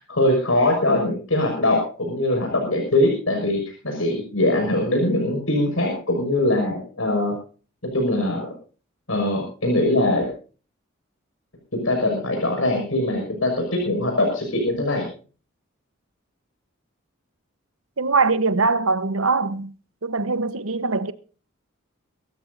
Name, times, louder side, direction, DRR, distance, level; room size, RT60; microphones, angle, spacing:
voice 1, 0.0-7.3 7.9-8.5 9.1-10.3 11.8-15.1, left 1 dB, 75° left, 6.2 m, -22 dB
voice 2, 18.0-19.7 20.0-21.1, right 4 dB, 85° right, 1.2 m, -22 dB
25.0 x 14.0 x 2.7 m
head